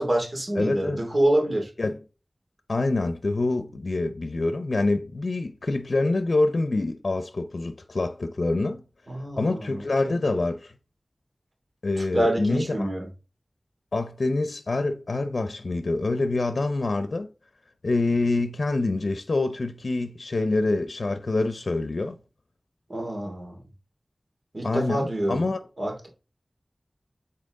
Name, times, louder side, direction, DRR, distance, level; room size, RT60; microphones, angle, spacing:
voice 1, 0.0-1.7 9.1-10.1 12.0-13.1 22.9-23.6 24.5-25.4 25.8-26.1, right 1 dB, 55° right, 2.7 m, -26 dB
voice 2, 0.6-1.1 1.8-2.0 2.7-8.8 9.4-10.7 11.8-12.9 13.9-17.3 17.8-22.2 24.6-25.6, left 2 dB, 75° left, 0.6 m, -26 dB
7.6 x 4.2 x 3.7 m
wide cardioid pair, 55°, 0 cm